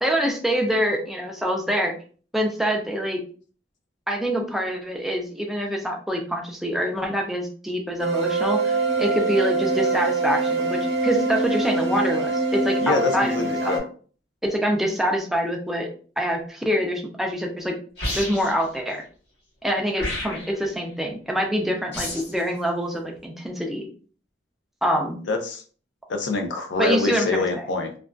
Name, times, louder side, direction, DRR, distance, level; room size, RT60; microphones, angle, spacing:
voice 1, 0.0-1.9 2.3-3.2 4.1-13.8 14.4-15.9 16.2-17.7 18.2-19.0 19.6-23.9 24.8-25.2 26.8-27.7, equal, ahead, 1 dB, 0.4 m, -25 dB
sound 1, 8.0-13.8, right 3 dB, 70° right, 0.7 m, -24 dB
voice 2, 12.8-13.8 25.3-25.6 26.1-28.0, left 3 dB, 90° left, 5 dB, 0.5 m, -25 dB
sound 2, 18.0-18.6 19.9-20.6 21.9-22.4, left 1 dB, 65° left, 1.1 m, -30 dB
2.4 x 2.3 x 2.2 m, 0.41 s
head